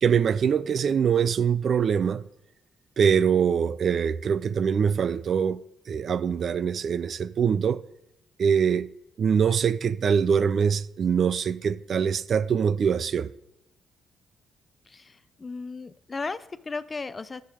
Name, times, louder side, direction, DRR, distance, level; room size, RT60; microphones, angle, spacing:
voice 1, 0.0-2.2 3.0-5.6 5.9-7.8 8.4-8.9 9.2-13.3, right 7 dB, 55° right, 0.3 m, -23 dB
voice 2, 14.9-17.4, left 4 dB, 30° left, 0.4 m, -35 dB
11.0 x 4.6 x 4.9 m
cardioid pair, 90°, 0 cm